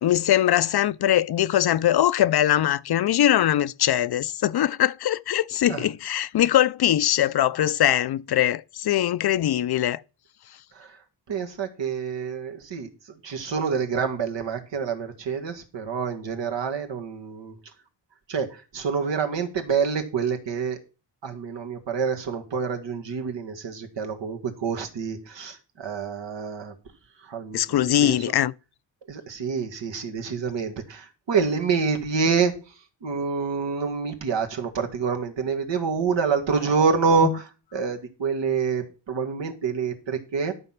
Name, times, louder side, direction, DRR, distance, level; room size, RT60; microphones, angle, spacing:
voice 1, 0.0-10.0 27.5-28.5 37.2-37.3, left 12 dB, 60° left, 0.5 m, -22 dB
voice 2, 11.3-12.9 13.2-17.6 18.3-20.8 21.2-26.7 27.2-28.2 29.1-32.5 33.0-40.5, right 5 dB, 75° right, 2.1 m, -27 dB
12.0 x 6.1 x 5.9 m
wide cardioid pair, 130°, 44 cm